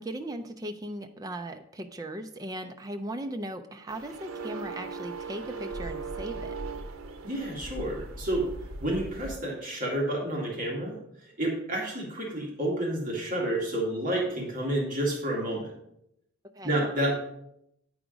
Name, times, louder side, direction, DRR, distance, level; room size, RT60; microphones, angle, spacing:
voice 1, 0.0-6.5 16.6-16.9, right 1 dB, 15° right, 6 dB, 0.4 m, -38 dB
sound 1, 3.9-9.4, right 3 dB, 85° right, 0.7 m, -38 dB
voice 2, 7.2-8.5 8.8-11.0 11.4-15.7 16.6-17.1, right 1 dB, 40° right, -2 dB, 1.8 m, -29 dB
9.0 x 4.9 x 5.0 m, 0.78 s
head